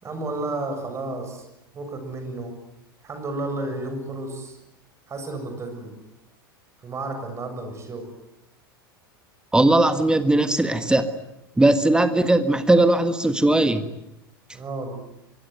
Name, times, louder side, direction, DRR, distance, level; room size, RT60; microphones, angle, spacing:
voice 1, 0.0-1.5 1.7-2.5 3.0-4.6 5.1-5.9 6.8-8.1 14.5-14.9, right 2 dB, 25° right, 6 dB, 7.2 m, -32 dB
voice 2, 9.5-11.2 11.6-13.9, right 2 dB, 5° right, 10 dB, 1.6 m, -19 dB
24.5 x 24.5 x 9.5 m, 0.87 s
figure-of-eight pair, 85°, 12 cm